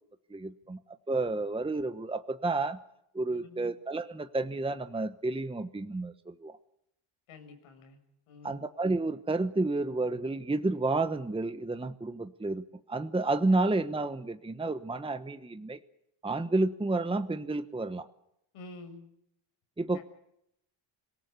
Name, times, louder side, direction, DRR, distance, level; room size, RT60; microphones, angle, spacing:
voice 1, 0.3-0.8 1.1-2.8 3.1-6.6 8.4-15.8 16.2-18.1 19.8-20.0, right 2 dB, 10° right, 10 dB, 1.0 m, -30 dB
voice 2, 3.3-3.7 7.3-8.0 8.3-8.6 18.5-19.0 19.9-20.0, left 3 dB, 80° left, 7 dB, 6.6 m, -49 dB
26.0 x 18.0 x 8.2 m, 0.79 s
cardioid pair, 95°, 49 cm